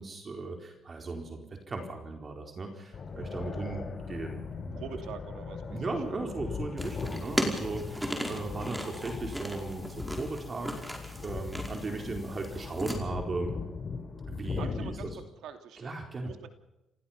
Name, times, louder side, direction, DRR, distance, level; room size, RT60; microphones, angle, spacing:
voice 1, 0.0-4.8 5.7-13.5 14.3-15.1 15.8-16.3, right 3 dB, 35° right, 3 dB, 4.4 m, -37 dB
sound 1, 2.9-15.2, left 5 dB, 40° left, 3.8 m, -39 dB
voice 2, 4.7-5.9 14.6-15.1 15.4-16.5, right 7 dB, 80° right, 7 dB, 2.8 m, -44 dB
sound 2, 6.8-13.0, equal, 5° right, 5.1 m, -37 dB
29.0 x 16.0 x 5.9 m, 0.94 s
cardioid pair, 90°, 0 cm